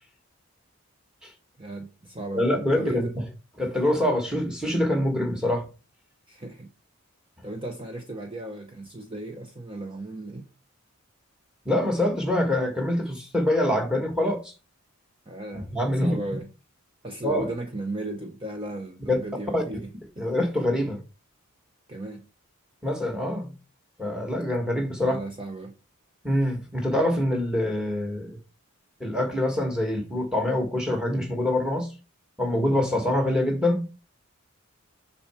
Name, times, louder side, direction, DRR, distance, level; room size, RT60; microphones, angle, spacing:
voice 1, 1.6-2.5 2.8-3.1 6.3-6.7 7.4-10.4 15.3-16.5 17.0-19.9 20.2-20.3 21.9-22.2 25.0-25.7, right 2 dB, 25° right, 0.7 m, -35 dB
voice 2, 2.3-3.1 3.6-5.6 11.6-14.5 15.7-16.2 17.2-17.5 19.1-19.2 19.5-19.6 20.2-21.0 22.8-23.5 24.0-25.2 26.2-28.4 29.0-31.9 32.4-33.8, left 1 dB, 5° right, 1.6 m, -25 dB
6.8 x 5.7 x 4.4 m
head